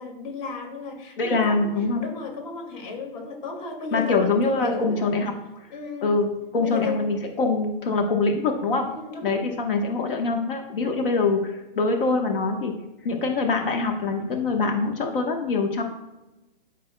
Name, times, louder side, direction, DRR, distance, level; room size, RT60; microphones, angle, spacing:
voice 1, 0.0-1.7 2.0-5.1 5.7-6.1 6.6-7.1 8.8-9.4, left 4 dB, 50° left, 2 dB, 2.3 m, -34 dB
voice 2, 1.2-2.0 3.9-5.3 6.0-6.3 6.5-8.9 9.2-12.7 13.0-15.8, left 3 dB, 65° left, 3 dB, 1.3 m, -24 dB
13.0 x 5.2 x 2.2 m, 1.0 s
hypercardioid pair, 165°, 30 cm